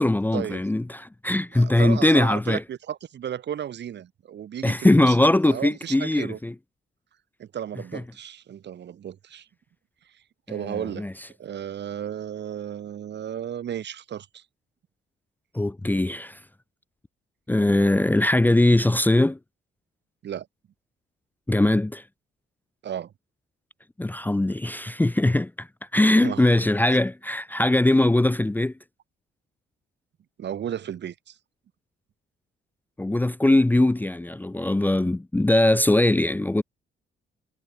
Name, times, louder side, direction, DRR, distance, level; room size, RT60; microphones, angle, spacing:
voice 1, 0.0-2.6 4.6-6.5 7.9-8.0 10.5-11.1 15.5-16.4 17.5-19.4 21.5-22.0 24.0-25.7 25.9-28.7 33.0-36.6, left 1 dB, 10° left, 0.7 m, -21 dB
voice 2, 1.5-5.2 5.4-6.4 7.4-9.5 10.5-11.1 11.4-14.4 20.2-20.5 22.8-23.1 26.2-26.5 30.4-31.4, right 9 dB, 60° right, 2.6 m, -34 dB
cardioid pair, 90°, 20 cm